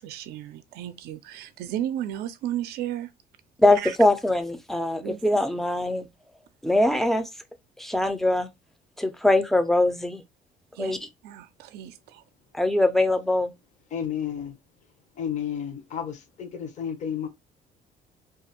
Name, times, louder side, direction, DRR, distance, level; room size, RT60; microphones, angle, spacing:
voice 1, 0.0-3.1 3.8-4.0 5.0-5.4 10.7-11.0 11.2-12.2, right 11 dB, 70° right, 0.4 m, -34 dB
voice 2, 3.6-6.1 6.6-7.2 7.8-8.5 9.0-10.2 10.8-11.0 12.5-13.5, left 1 dB, ahead, 0.4 m, -22 dB
voice 3, 13.9-14.6 15.2-17.3, left 8 dB, 45° left, 0.6 m, -31 dB
2.5 x 2.3 x 2.8 m
cardioid pair, 110°, 17 cm